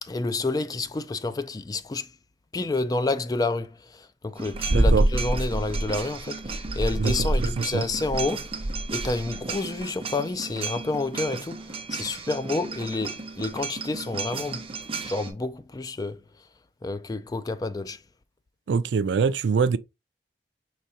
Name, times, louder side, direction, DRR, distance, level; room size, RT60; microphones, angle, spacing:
voice 1, 0.0-2.1 2.5-8.5 8.9-14.7 15.0-16.2 16.8-18.0, left 3 dB, 20° left, 0.3 m, -29 dB
sound 1, 4.4-15.3, right 2 dB, 30° right, 0.6 m, -29 dB
voice 2, 4.7-5.0 7.0-7.3 7.6-7.8 18.7-19.8, right 5 dB, 80° right, 0.4 m, -24 dB
4.8 x 3.2 x 2.7 m
head